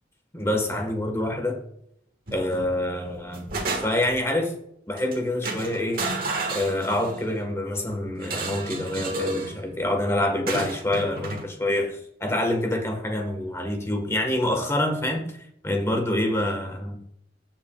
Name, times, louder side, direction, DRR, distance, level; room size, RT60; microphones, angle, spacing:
voice 1, 0.3-1.6 2.3-3.5 3.8-4.5 4.9-6.0 6.5-15.3 15.6-17.0, left 1 dB, 15° left, 3 dB, 1.4 m, -26 dB
sound 1, 2.3-2.7 3.1-4.2 5.0-5.2 5.4-7.3 8.2-9.6 10.5-11.5, right 3 dB, 50° right, 1.6 m, -31 dB
15.5 x 6.0 x 2.3 m, 0.73 s
head